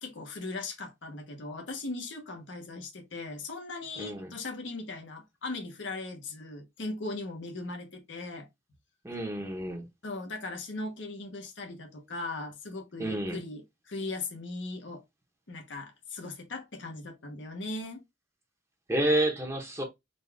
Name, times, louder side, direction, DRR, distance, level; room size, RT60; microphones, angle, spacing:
voice 1, 0.0-8.5 10.0-15.0 15.5-18.0, left 2 dB, 70° left, 0.9 m, -38 dB
voice 2, 4.0-4.3 9.0-9.8 13.0-13.4 18.9-19.8, right 1 dB, 15° right, 0.8 m, -29 dB
3.9 x 2.3 x 3.3 m
head